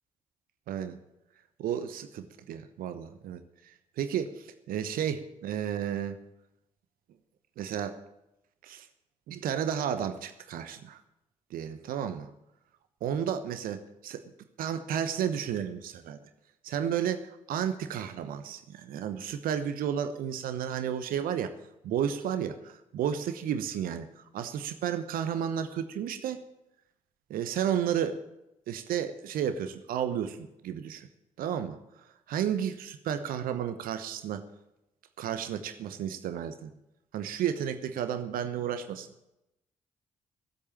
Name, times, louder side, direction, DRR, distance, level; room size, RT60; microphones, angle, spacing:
voice 1, 0.7-1.0 1.6-3.4 4.0-6.2 7.6-8.0 8.6-8.9 9.3-11.0 11.5-12.3 13.0-14.3 14.6-16.2 16.6-21.5 21.8-26.4 27.3-28.2 28.7-30.4 30.6-31.1 31.4-31.8 32.3-34.4 35.2-36.7 37.1-39.1, right 9 dB, 60° right, 10 dB, 1.1 m, -32 dB
17.0 x 8.4 x 7.3 m, 0.88 s
figure-of-eight pair, 40°, 16 cm